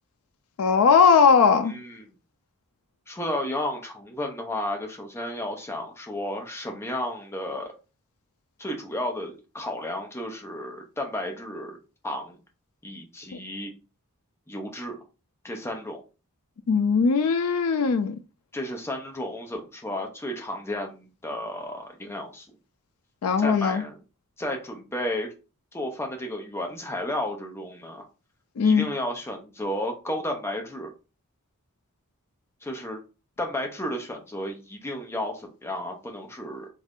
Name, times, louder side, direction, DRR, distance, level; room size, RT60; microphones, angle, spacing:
voice 1, 0.6-1.7 16.7-18.2 23.2-23.8 28.6-28.9, left 5 dB, 75° left, 0.4 m, -19 dB
voice 2, 1.7-2.0 3.1-7.7 8.6-11.8 12.0-12.4 12.8-13.7 14.5-15.0 15.4-16.0 18.5-22.5 23.4-24.0 24.4-25.3 25.7-28.0 28.6-30.9 32.6-33.0 33.4-36.7, left 1 dB, 10° left, 0.6 m, -32 dB
3.2 x 2.5 x 3.5 m
head